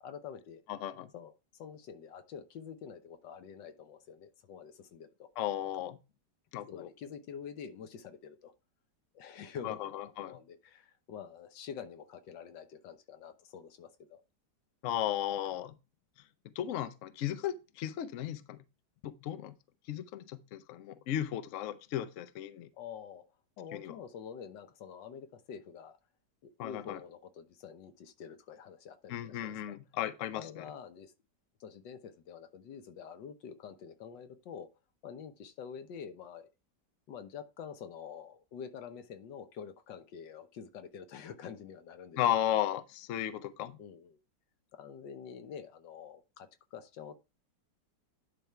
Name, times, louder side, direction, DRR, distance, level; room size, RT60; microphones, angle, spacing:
voice 1, 0.0-0.6 1.1-5.3 6.7-8.5 9.1-14.2 22.7-23.2 23.6-26.0 26.4-29.8 30.3-31.1 31.6-34.7 35.0-36.5 37.1-42.2 43.8-44.2 44.7-47.2, left 7 dB, 90° left, 1.6 m, -47 dB
voice 2, 0.7-1.1 5.4-6.0 6.5-6.9 9.6-10.3 14.8-15.7 16.4-18.6 19.0-19.5 19.9-22.7 23.7-24.0 26.6-27.0 29.1-30.6 42.2-43.8, left 11 dB, 60° left, 0.8 m, -35 dB
10.5 x 3.6 x 4.4 m
omnidirectional pair, 1.9 m